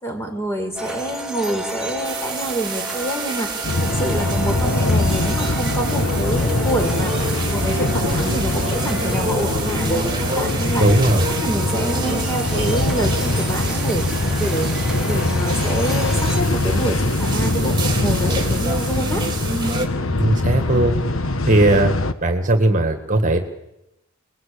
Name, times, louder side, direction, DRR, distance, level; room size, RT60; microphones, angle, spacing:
voice 1, 0.0-10.9 11.4-14.7 15.1-19.2, right 1 dB, 15° left, 4 dB, 5.2 m, -27 dB
sound 1, 0.8-16.4, right 2 dB, 5° right, 3.2 m, -32 dB
sound 2, 2.0-19.9, right 3 dB, 20° right, 3.7 m, -29 dB
sound 3, 3.6-22.1, left 2 dB, 70° left, 1.5 m, -22 dB
voice 2, 10.8-11.3 20.2-20.9 21.5-21.9 22.2-23.5, right 2 dB, 40° right, 7 dB, 2.1 m, -17 dB
28.5 x 21.0 x 8.8 m, 0.91 s
head